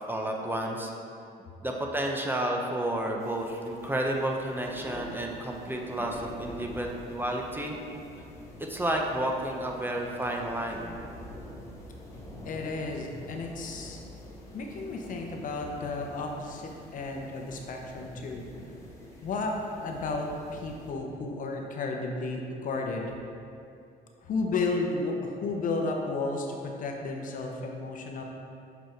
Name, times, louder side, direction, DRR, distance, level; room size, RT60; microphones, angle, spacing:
voice 1, 0.1-0.9 1.6-7.8 8.7-10.9, right 1 dB, 10° right, 1 dB, 0.6 m, -31 dB
sound 1, 3.2-20.9, left 1 dB, 15° left, 1.2 m, -46 dB
voice 2, 12.4-14.0 14.5-18.5 19.2-23.1 24.2-28.2, left 3 dB, 50° left, 1 dB, 0.9 m, -33 dB
6.2 x 5.3 x 4.5 m, 2.5 s
cardioid pair, 110°, 17 cm